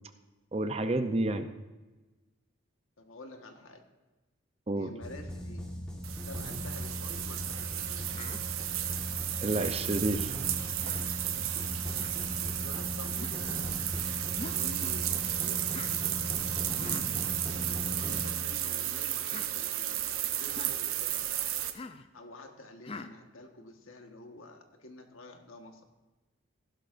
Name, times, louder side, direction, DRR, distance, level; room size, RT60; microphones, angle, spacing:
voice 1, 0.5-1.5 4.7-4.9 9.4-10.4, right 2 dB, 30° right, 9 dB, 0.6 m, -30 dB
voice 2, 3.0-3.8 4.7-5.7 6.3-8.1 12.1-13.8 14.5-16.4 16.9-21.6 22.1-25.8, left 1 dB, 80° left, 4 dB, 1.5 m, -49 dB
sound 1, 5.0-18.9, equal, 5° left, 1.5 m, -39 dB
sound 2, 6.0-21.7, right 12 dB, 90° right, 0.9 m, -33 dB
Human voice, 8.1-8.4 9.5-9.8 10.8-11.1 11.9-12.1 13.2-13.4 14.4-14.7 15.7-15.9 16.7-17.1 17.9-18.3 19.2-19.5 20.5-20.8 21.7-22.1 22.8-23.1, left 3 dB, 25° left, 0.4 m, -44 dB
16.0 x 11.5 x 2.6 m, 1.2 s
head